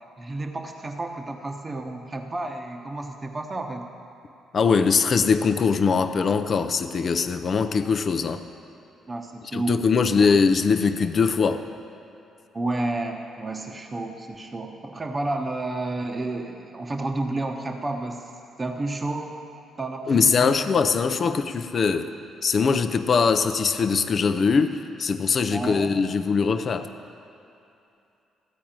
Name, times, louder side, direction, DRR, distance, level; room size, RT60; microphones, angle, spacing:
voice 1, 0.0-3.9 9.1-9.8 10.2-10.3 12.5-18.3 18.6-19.3 19.8-20.5 21.2-21.3 25.5-25.9, right 2 dB, 30° right, 3 dB, 1.0 m, -31 dB
voice 2, 4.5-8.4 9.5-11.7 20.1-22.1 22.4-26.9, left 5 dB, 50° left, 8 dB, 0.5 m, -22 dB
14.0 x 4.7 x 8.8 m, 2.7 s
supercardioid pair, 70°, 0 cm